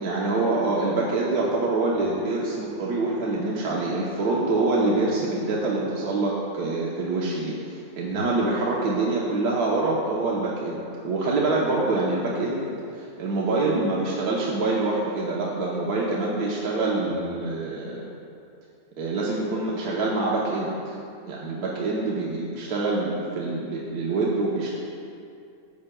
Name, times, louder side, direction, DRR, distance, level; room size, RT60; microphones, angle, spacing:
voice 1, 0.0-18.1 19.0-21.0 21.2-24.7, right 2 dB, 90° right, -4 dB, 1.4 m, -25 dB
13.0 x 8.5 x 2.2 m, 2.5 s
omnidirectional pair, 1.6 m